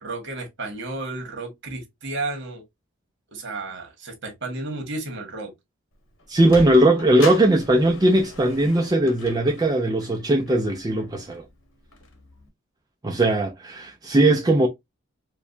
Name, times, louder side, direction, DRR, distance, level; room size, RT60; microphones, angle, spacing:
voice 1, 0.0-2.6 3.3-5.5, right 2 dB, 65° right, 1.5 m, -32 dB
Sliding door, 5.9-12.5, left 3 dB, 75° left, 1.1 m, -40 dB
voice 2, 6.3-11.4 13.0-14.7, right 1 dB, 20° right, 0.4 m, -19 dB
4.6 x 2.2 x 2.6 m
head